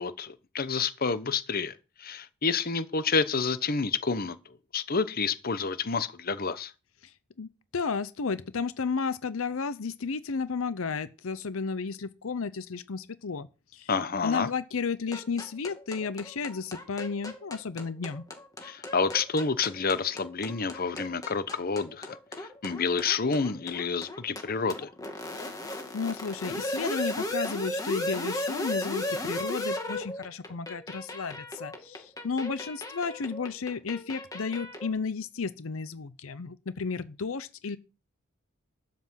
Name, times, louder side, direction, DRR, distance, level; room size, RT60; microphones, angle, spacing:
voice 1, 0.0-4.4 4.7-6.7 13.9-14.5 18.6-24.9, left 5 dB, 45° left, 0.9 m, -29 dB
voice 2, 7.0-13.5 13.7-13.9 14.2-18.2 25.4-25.5 25.9-37.8, left 5 dB, 80° left, 0.7 m, -33 dB
sound 1, 15.1-34.9, left 1 dB, 15° left, 2.2 m, -36 dB
12.5 x 5.9 x 7.4 m
head